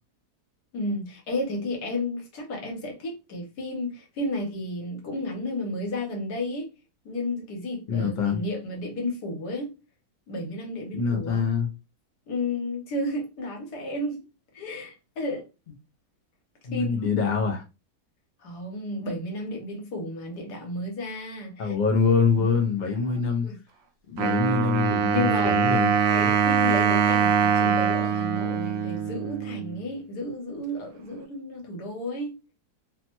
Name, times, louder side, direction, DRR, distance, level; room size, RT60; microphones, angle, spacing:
voice 1, 0.7-6.7 7.0-9.7 10.3-11.5 12.3-14.2 14.5-15.5 16.7-17.0 18.4-21.7 23.4-23.6 25.1-25.6 26.1-32.3, left 1 dB, 80° left, 1.5 m, -32 dB
voice 2, 7.9-8.4 10.9-11.7 16.6-17.6 21.6-23.5 24.1-25.9 26.2-26.3, left 5 dB, 55° left, 0.5 m, -24 dB
Wind instrument woodwind instrument, 24.2-29.8, right 7 dB, 90° right, 0.5 m, -23 dB
3.2 x 2.1 x 2.9 m
omnidirectional pair, 1.7 m